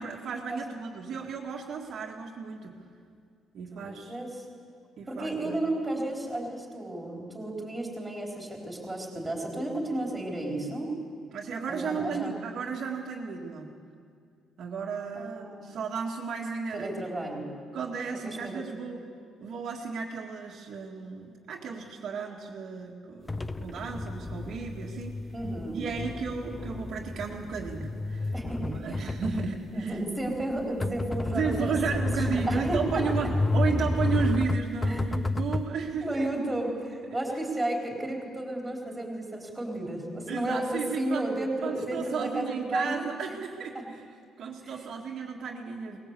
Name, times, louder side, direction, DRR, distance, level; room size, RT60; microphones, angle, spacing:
voice 1, 0.0-2.8 3.5-4.2 5.0-5.6 11.3-13.7 14.6-17.0 17.7-19.0 19.4-25.2 25.7-30.0 31.3-36.3 40.3-41.3 41.6-44.1 44.4-46.0, right 6 dB, 50° right, -1 dB, 1.8 m, -34 dB
voice 2, 3.7-4.4 5.1-10.9 11.7-12.4 15.1-15.8 16.7-17.5 18.2-18.6 25.3-25.8 28.3-29.0 29.7-33.0 34.8-35.1 36.0-43.1 43.7-43.8 44.6-44.7, right 1 dB, 5° right, -1 dB, 4.2 m, -33 dB
sound 1, 23.3-35.7, left 2 dB, 15° left, 0.5 m, -31 dB
22.5 x 19.5 x 8.3 m, 2.2 s
cardioid pair, 175°, 0 cm